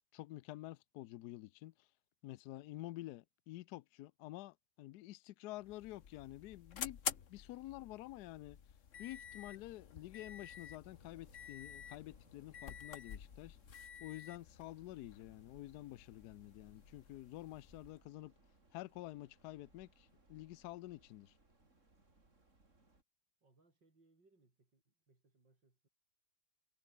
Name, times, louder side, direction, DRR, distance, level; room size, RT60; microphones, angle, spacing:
voice 1, 0.1-1.9 2.2-7.0 7.3-8.6 9.0-13.6 14.0-18.3 18.7-21.3, left 16 dB, 75° left, 1.1 m, -49 dB
sound 1, 5.6-18.0, left 7 dB, 50° left, 1.4 m, -50 dB
sound 2, 10.8-23.0, right 2 dB, 40° right, 4.8 m, -70 dB
voice 2, 23.4-25.9, right 3 dB, 90° right, 6.3 m, -72 dB
omnidirectional pair, 1.9 m